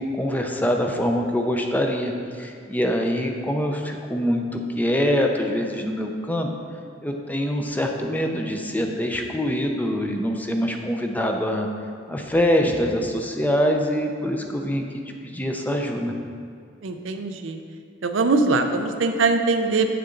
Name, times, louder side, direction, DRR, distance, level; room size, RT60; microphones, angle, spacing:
voice 1, 0.0-6.5 7.0-11.7 12.1-14.8 15.2-16.1, equal, 10° left, 3 dB, 0.5 m, -24 dB
voice 2, 16.8-17.6 18.0-19.9, right 3 dB, 85° right, 6 dB, 0.6 m, -22 dB
7.7 x 6.7 x 3.8 m, 2.3 s
head